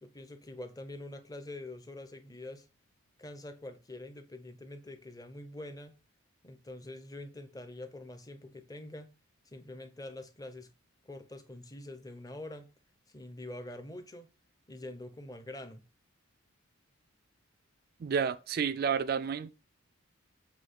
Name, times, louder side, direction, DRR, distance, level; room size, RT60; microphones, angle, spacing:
voice 1, 0.0-2.7 3.2-5.9 6.4-9.1 9.5-10.7 11.0-12.7 13.1-14.3 14.7-15.8, left 1 dB, 15° left, 0.7 m, -45 dB
voice 2, 18.0-19.5, right 6 dB, 45° right, 0.3 m, -30 dB
7.6 x 3.2 x 5.5 m
head